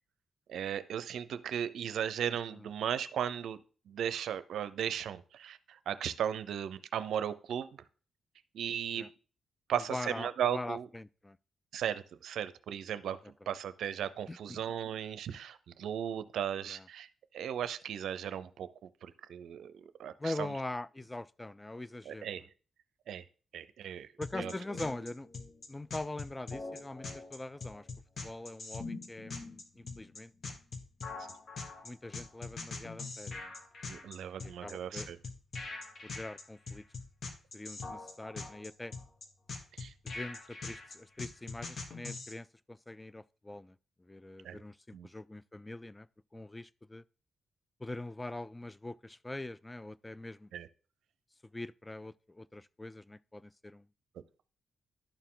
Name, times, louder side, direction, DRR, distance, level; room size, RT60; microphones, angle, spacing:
voice 1, 0.5-3.6 3.9-7.7 8.5-9.1 9.7-10.9 11.7-17.1 17.3-20.5 22.1-22.5 23.1-23.2 23.5-24.1 24.4-24.5 33.9-35.2 39.8-39.9 44.4-44.6 44.9-45.1 50.5-50.7, right 9 dB, 80° right, 0.5 m, -36 dB
voice 2, 9.9-11.4 13.4-13.6 14.3-14.6 16.7-16.9 20.2-22.3 24.2-25.3 25.7-27.9 28.2-30.6 31.8-33.5 33.9-35.1 36.0-36.8 37.5-38.9 40.0-43.8 44.1-46.1 46.3-47.0 47.8-50.5 51.5-53.9, left 2 dB, 15° left, 0.3 m, -43 dB
sound 1, 24.2-42.3, left 3 dB, 55° left, 1.5 m, -42 dB
11.5 x 4.5 x 3.8 m
cardioid pair, 65°, 0 cm